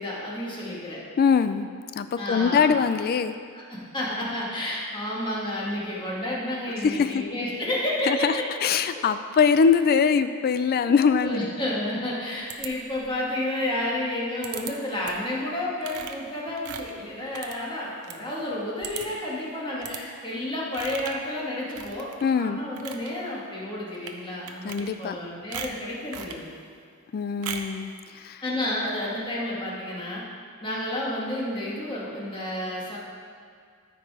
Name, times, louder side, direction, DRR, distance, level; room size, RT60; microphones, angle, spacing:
voice 1, 0.0-1.0 2.2-2.7 3.5-8.4 8.9-9.0 10.8-26.5 28.4-30.2 30.6-33.0, left 1 dB, 25° left, -5 dB, 1.8 m, -31 dB
voice 2, 1.2-1.7 2.0-3.4 6.8-7.2 8.1-8.3 8.6-11.5 22.2-22.6 24.6-25.2 27.1-28.4, left 6 dB, 45° left, 11 dB, 0.3 m, -22 dB
sound 1, 12.5-13.2 14.4-14.7 15.0-15.3 15.8-18.2 18.5-18.6 18.8-19.3 19.8-20.0 20.7-21.3 21.7-22.3 22.6-23.1 23.9-24.2 24.5-25.2 25.5-26.4 27.4-27.8, right 7 dB, 85° right, 0.7 m, -38 dB
13.5 x 4.7 x 4.8 m, 2.1 s
head